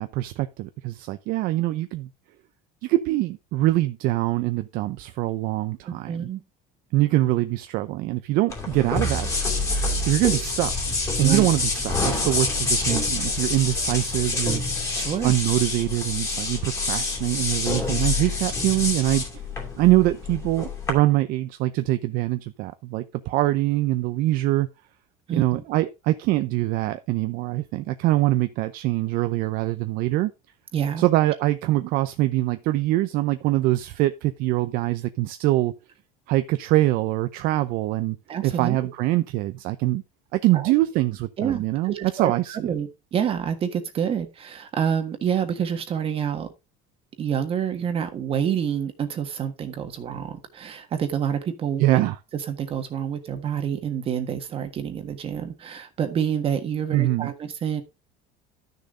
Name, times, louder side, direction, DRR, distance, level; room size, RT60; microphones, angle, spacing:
voice 1, 0.0-2.1 2.8-6.3 6.9-9.3 10.1-14.6 15.2-19.2 19.8-24.7 25.4-30.3 31.0-35.7 36.3-38.2 38.4-40.0 40.3-42.7 51.8-52.2 56.9-57.3, right 16 dB, 55° right, 0.6 m, -23 dB
voice 2, 5.9-6.4 11.2-11.5 12.0-12.3 13.9-14.0 14.9-15.3 25.3-25.6 30.7-31.0 38.3-38.9 40.5-40.7 41.4-46.5 47.2-52.0 52.3-57.8, right 8 dB, 35° right, 1.5 m, -28 dB
mysound Regenboog Osama, 8.5-20.9, left 3 dB, 15° left, 2.6 m, -27 dB
12.0 x 6.7 x 3.8 m
cardioid pair, 155°, 18 cm